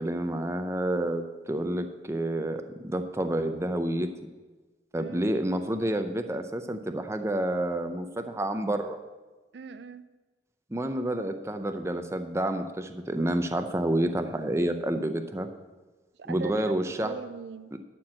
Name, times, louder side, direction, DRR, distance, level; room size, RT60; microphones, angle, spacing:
voice 1, 0.0-4.1 4.9-9.0 10.7-15.5 16.3-17.1, right 1 dB, 15° right, 7 dB, 0.5 m, -29 dB
voice 2, 9.5-10.1 16.2-17.7, right 5 dB, 70° right, 13 dB, 0.4 m, -41 dB
11.5 x 4.5 x 7.5 m, 1.3 s
head